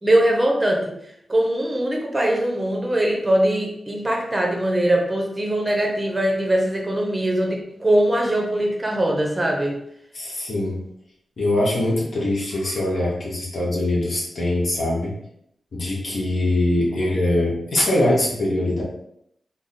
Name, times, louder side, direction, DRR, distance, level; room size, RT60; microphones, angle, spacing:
voice 1, 0.0-1.0 1.3-9.8, right 1 dB, 15° right, 0 dB, 0.7 m, -21 dB
voice 2, 10.1-10.8 11.4-15.2 15.7-18.8, left 1 dB, 60° left, -4 dB, 1.0 m, -22 dB
3.4 x 2.0 x 4.1 m, 0.74 s
wide cardioid pair, 120°, 0 cm